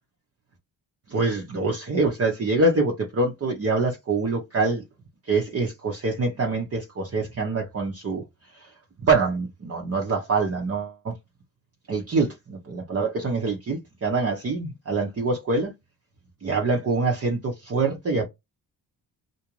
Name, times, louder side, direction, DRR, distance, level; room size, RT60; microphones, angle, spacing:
voice 1, 1.1-4.8 5.3-8.2 8.5-8.7 9.0-11.1 11.9-15.7 16.4-18.3, right 3 dB, 35° right, 0.7 m, -25 dB
2.4 x 2.2 x 3.0 m
supercardioid pair, 60°, 44 cm